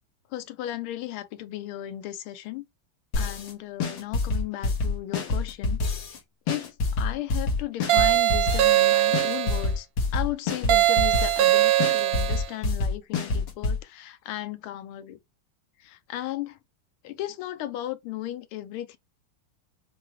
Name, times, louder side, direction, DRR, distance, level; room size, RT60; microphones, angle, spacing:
voice 1, 0.3-2.6 3.1-5.8 6.1-6.2 6.5-9.9 10.1-15.2 15.8-16.6 17.0-19.0, left 14 dB, 85° left, 1.5 m, -35 dB
sound 1, 3.1-3.5 3.8-6.2 6.5-8.8 9.1-11.5 11.8-13.8, left 3 dB, 70° left, 1.8 m, -27 dB
sound 2, 7.9-9.7 10.7-12.5, right 14 dB, 75° right, 1.2 m, -21 dB
6.0 x 2.3 x 3.0 m
omnidirectional pair, 2.3 m